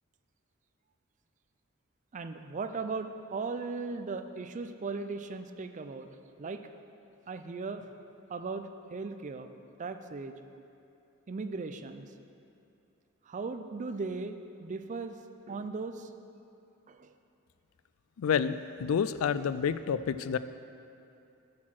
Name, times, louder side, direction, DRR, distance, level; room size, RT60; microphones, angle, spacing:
voice 1, 2.1-6.1 6.4-6.6 7.3-7.8 8.3-9.5 9.8-10.3 11.3-12.1 13.3-15.2 15.5-16.1 16.9-17.1, right 4 dB, 35° right, 8 dB, 0.4 m, -37 dB
voice 2, 18.2-20.4, left 7 dB, 80° left, 14 dB, 0.3 m, -29 dB
8.5 x 6.4 x 6.1 m, 2.7 s
head